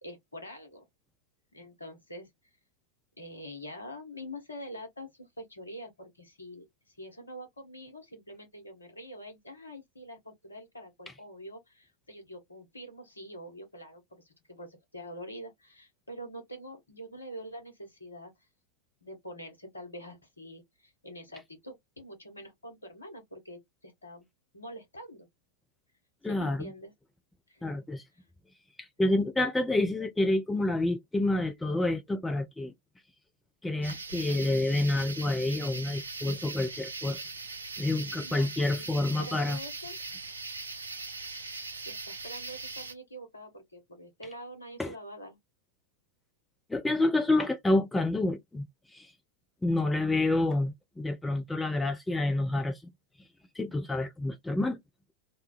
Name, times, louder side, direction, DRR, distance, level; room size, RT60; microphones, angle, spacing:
voice 1, 0.0-0.9 1.5-2.3 3.2-18.5 19.0-24.3 24.5-25.3 26.3-26.9 27.5-27.8 28.1-28.3 38.1-40.0 41.8-45.4, equal, 80° left, 1.1 m, -45 dB
voice 2, 26.2-26.7 27.6-28.0 29.0-32.7 33.6-37.2 37.8-39.6 44.8-44.9 46.7-48.7 48.9-49.1 49.6-52.8 53.6-54.8, left 2 dB, 10° left, 0.5 m, -28 dB
sound 1, 33.8-42.9, right 3 dB, 75° right, 0.5 m, -40 dB
3.0 x 2.2 x 2.4 m
figure-of-eight pair, 90°, 0 cm